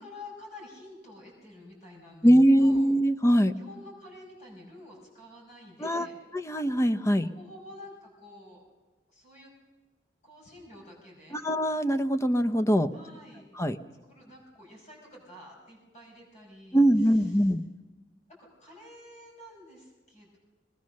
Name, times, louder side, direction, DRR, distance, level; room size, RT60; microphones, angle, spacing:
voice 1, 0.0-2.9 3.5-6.1 7.2-8.6 9.1-9.5 10.2-11.4 12.9-13.4 14.1-17.5 18.4-20.4, left 1 dB, 40° left, -2 dB, 5.4 m, -49 dB
voice 2, 2.2-3.5 5.8-6.1 6.3-7.3 11.3-12.9 13.6-13.8 16.7-17.7, equal, 15° left, 8 dB, 0.7 m, -22 dB
22.5 x 19.0 x 6.5 m, 1.3 s
head